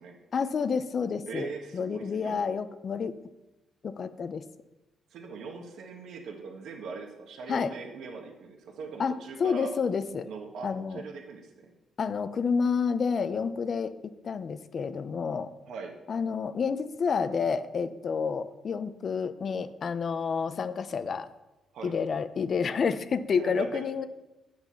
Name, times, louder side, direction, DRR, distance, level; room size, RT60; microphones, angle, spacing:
voice 1, 0.3-3.1 3.8-4.4 7.5-7.7 9.0-10.3 10.6-11.0 12.0-13.9 14.2-15.5 16.1-21.3 21.8-24.1, left 5 dB, 50° left, 12 dB, 0.7 m, -29 dB
voice 2, 1.3-2.4 5.1-9.7 10.3-11.7 15.7-15.9 21.7-22.0 23.4-23.8, right 5 dB, 75° right, 2 dB, 1.5 m, -40 dB
9.1 x 7.9 x 5.7 m, 1.0 s
cardioid pair, 90°, 0 cm